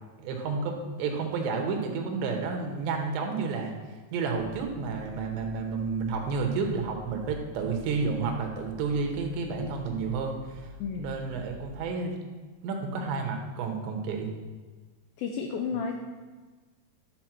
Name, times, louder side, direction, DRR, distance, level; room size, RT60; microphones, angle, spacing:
voice 1, 0.2-3.7 4.1-10.7 11.0-12.2 12.6-14.3, right 4 dB, 90° right, 3 dB, 3.4 m, -31 dB
sound 1, 4.4-11.9, left 4 dB, 65° left, 3.8 m, -48 dB
voice 2, 15.2-16.0, left 6 dB, 85° left, 2 dB, 2.1 m, -31 dB
11.5 x 4.8 x 6.1 m, 1.4 s
omnidirectional pair, 4.9 m